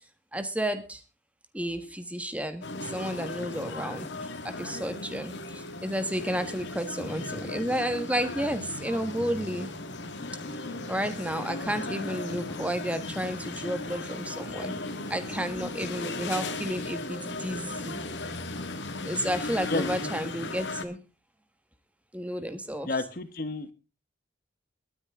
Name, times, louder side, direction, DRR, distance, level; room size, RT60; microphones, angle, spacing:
voice 1, 0.3-1.0 1.5-4.1 4.4-9.7 10.9-14.8 15.1-18.0 19.0-21.0 22.1-22.9, equal, 10° right, 9 dB, 1.4 m, -32 dB
sound 1, 2.6-20.8, left 2 dB, 80° left, 1.9 m, -36 dB
voice 2, 22.9-23.7, left 3 dB, 50° left, 12 dB, 1.2 m, -30 dB
22.0 x 9.5 x 3.7 m, 0.31 s
head